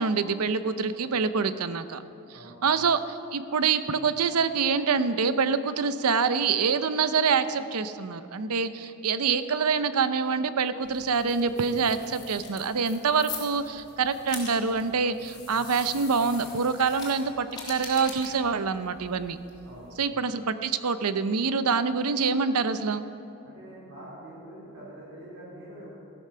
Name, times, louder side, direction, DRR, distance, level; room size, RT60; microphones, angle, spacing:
voice 1, 0.0-2.0 2.6-19.4 20.0-23.0, right 5 dB, 90° right, 12 dB, 0.7 m, -26 dB
sound 1, 10.8-20.1, left 4 dB, 20° left, 2.9 m, -43 dB
voice 2, 23.4-26.0, right 1 dB, 70° right, -8 dB, 4.2 m, -45 dB
14.0 x 12.5 x 5.7 m, 2.8 s
head